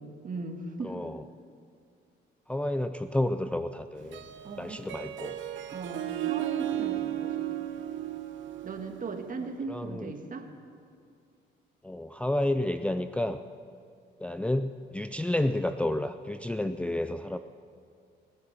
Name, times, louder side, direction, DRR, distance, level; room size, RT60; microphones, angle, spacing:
voice 1, 0.2-1.1 4.4-4.8 5.7-7.3 8.6-10.5, right 3 dB, 45° right, 4 dB, 1.7 m, -38 dB
voice 2, 0.8-1.2 2.5-4.2 4.6-5.4 6.7-7.1 9.7-10.1 11.8-13.4 14.2-17.4, left 1 dB, 5° left, 8 dB, 0.4 m, -30 dB
Harp, 4.0-9.5, right 13 dB, 70° right, 0.9 m, -35 dB
19.5 x 8.2 x 7.2 m, 2.4 s
cardioid pair, 90°, 20 cm